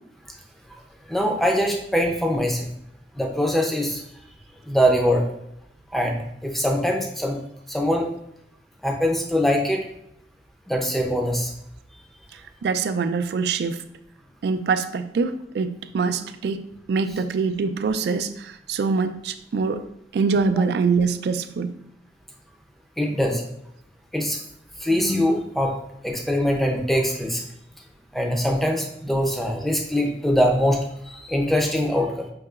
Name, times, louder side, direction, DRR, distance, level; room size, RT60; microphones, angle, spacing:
voice 1, 1.1-2.7 3.1-4.0 4.6-5.3 5.9-7.4 7.7-8.1 8.8-9.8 10.7-11.5 23.0-23.4 24.1-24.4 24.8-25.7 26.0-27.4 28.1-32.3, equal, ahead, 0 dB, 0.5 m, -22 dB
voice 2, 12.3-13.8 14.4-19.8 20.1-21.7, right 4 dB, 65° right, 9 dB, 0.3 m, -24 dB
5.4 x 2.8 x 2.4 m, 0.77 s
head